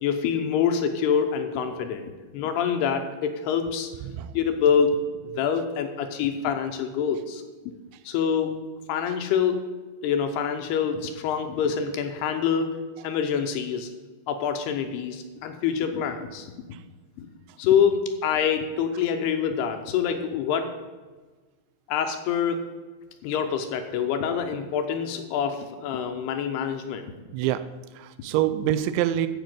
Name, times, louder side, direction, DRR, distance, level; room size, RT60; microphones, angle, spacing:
voice 1, 0.0-3.9 4.3-5.0 5.4-7.7 8.1-8.6 8.9-9.6 10.0-12.7 13.0-13.9 14.3-16.5 17.2-17.3 17.6-20.8 21.9-22.6 23.2-27.1, left 7 dB, 80° left, 6 dB, 2.7 m, -26 dB
voice 2, 27.3-27.6 28.0-29.3, right 12 dB, 90° right, 12 dB, 2.9 m, -25 dB
14.0 x 5.5 x 7.7 m, 1.3 s
omnidirectional pair, 5.1 m